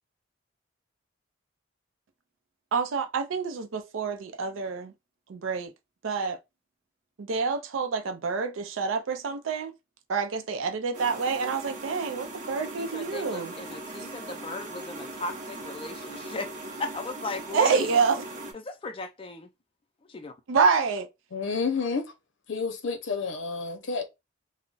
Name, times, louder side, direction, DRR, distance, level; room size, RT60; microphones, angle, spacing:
voice 1, 2.7-4.9 5.3-5.7 6.0-6.4 7.2-9.7 10.1-13.5 17.5-18.2 20.5-21.1, right 5 dB, 80° right, 0.4 m, -27 dB
sound 1, 10.9-18.5, right 2 dB, 40° right, 0.7 m, -40 dB
voice 2, 12.8-16.5 16.8-18.0 18.5-19.5 20.1-20.3, left 2 dB, 25° left, 0.4 m, -37 dB
voice 3, 21.3-22.1 22.5-24.1, left 4 dB, 70° left, 0.6 m, -30 dB
2.3 x 2.0 x 3.8 m
head